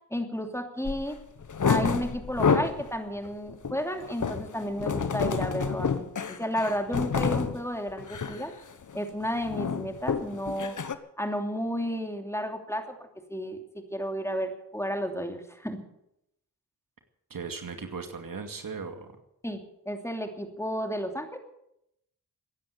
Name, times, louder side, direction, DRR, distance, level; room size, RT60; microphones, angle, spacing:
voice 1, 0.1-1.2 1.6-5.9 6.3-8.5 8.9-10.8 11.2-13.6 13.9-15.8 19.4-21.4, equal, 5° left, 5 dB, 2.8 m, -32 dB
sound 1, 0.8-1.0 1.4-2.9 3.3-7.6 8.0-8.4 8.7-9.0 9.2-10.9, left 6 dB, 50° left, 1.3 m, -29 dB
voice 2, 17.3-19.1, right 5 dB, 60° right, 6 dB, 2.4 m, -37 dB
16.0 x 10.5 x 8.5 m, 0.81 s
cardioid pair, 45°, 38 cm